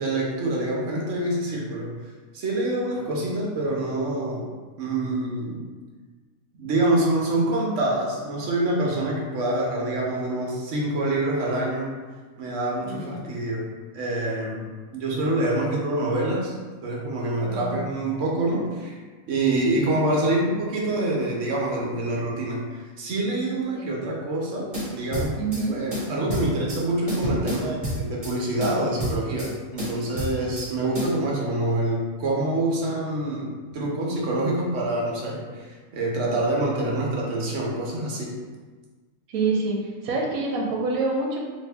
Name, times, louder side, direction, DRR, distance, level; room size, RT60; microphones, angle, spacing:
voice 1, 0.0-2.0 2.3-4.5 4.8-5.6 6.6-11.9 12.4-13.7 13.9-14.7 14.9-16.5 16.8-19.0 19.3-25.4 25.7-38.3, right 1 dB, 65° right, -3 dB, 1.0 m, -26 dB
voice 2, 12.8-13.3 17.4-17.8 23.7-23.9 25.4-25.8 39.3-41.4, right 3 dB, 85° right, -1 dB, 1.1 m, -27 dB
sound 1, 24.7-25.6 25.9-26.8 27.1-28.3 28.6-29.5 29.8-30.7 30.9-31.1, equal, 30° right, 1.0 m, -29 dB
2.8 x 2.6 x 3.2 m, 1.4 s
omnidirectional pair, 1.5 m